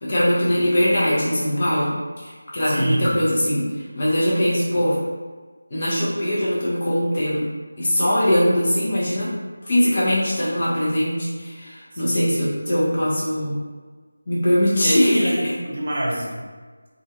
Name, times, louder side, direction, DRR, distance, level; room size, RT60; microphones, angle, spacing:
voice 1, 0.0-3.7 3.9-5.0 5.7-7.5 7.8-9.3 9.6-13.6 14.3-15.2, equal, 35° left, -8 dB, 0.9 m, -21 dB
voice 2, 2.6-3.1 12.1-12.3 14.8-16.4, right 1 dB, 45° right, -4 dB, 0.7 m, -26 dB
3.2 x 2.5 x 2.7 m, 1.4 s
figure-of-eight pair, 170°, 0 cm